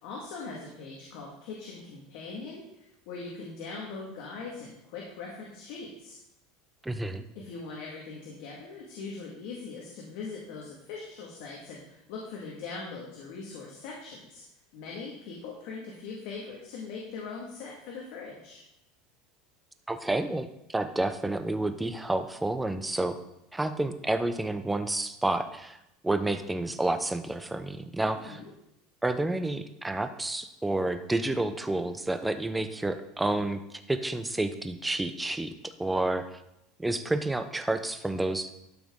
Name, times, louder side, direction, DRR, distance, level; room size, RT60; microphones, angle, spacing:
voice 1, 0.0-6.2 7.4-14.4 14.7-18.6 28.3-28.5, left 4 dB, 70° left, -2 dB, 1.9 m, -41 dB
voice 2, 6.8-7.2 19.9-23.2 23.5-25.8 26.0-28.4 29.0-36.3 36.8-38.5, right 2 dB, 10° right, 9 dB, 0.7 m, -30 dB
12.5 x 5.9 x 3.8 m, 0.85 s
supercardioid pair, 125°, 0 cm